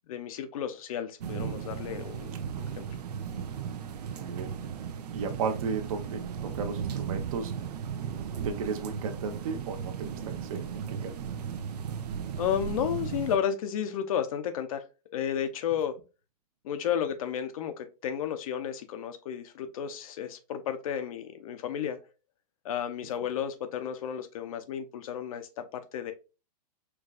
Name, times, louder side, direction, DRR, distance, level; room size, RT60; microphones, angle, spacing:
voice 1, 0.1-2.9 12.4-14.8 15.1-15.9 16.6-22.0 22.6-26.1, left 9 dB, 60° left, 0.7 m, -32 dB
sound 1, 1.2-13.4, right 7 dB, 85° right, 0.7 m, -36 dB
voice 2, 4.1-4.5 5.1-7.5 8.4-11.2, right 5 dB, 60° right, 0.9 m, -35 dB
4.6 x 2.5 x 2.4 m
supercardioid pair, 160°, 20 cm